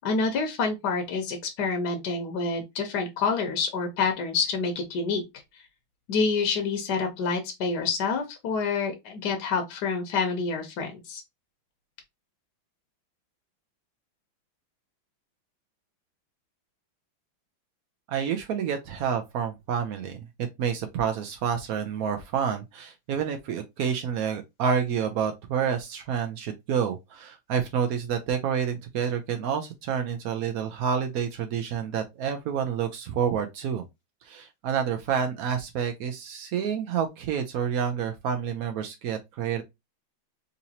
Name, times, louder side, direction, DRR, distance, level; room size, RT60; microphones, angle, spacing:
voice 1, 0.0-5.2 5.5-5.6 6.1-11.2, left 4 dB, 60° left, 1.2 m, -27 dB
voice 2, 18.1-33.8 34.2-39.6, right 7 dB, 90° right, 0.7 m, -29 dB
3.9 x 2.9 x 2.7 m
omnidirectional pair, 2.2 m